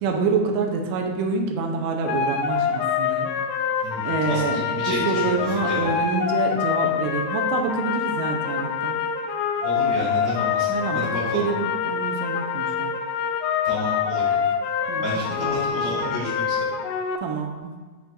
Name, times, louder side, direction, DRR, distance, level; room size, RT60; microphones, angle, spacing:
voice 1, 0.0-3.3 4.0-9.0 10.7-12.9 14.9-15.8 17.2-17.7, right 4 dB, 85° right, 2 dB, 3.1 m, -27 dB
sound 1, 2.1-17.2, left 7 dB, 85° left, 2.9 m, -25 dB
voice 2, 3.8-5.9 9.6-10.7 10.9-11.4 13.6-14.4 14.9-16.6, equal, 60° left, -10 dB, 1.0 m, -31 dB
9.8 x 5.8 x 2.5 m, 1.4 s
omnidirectional pair, 5.7 m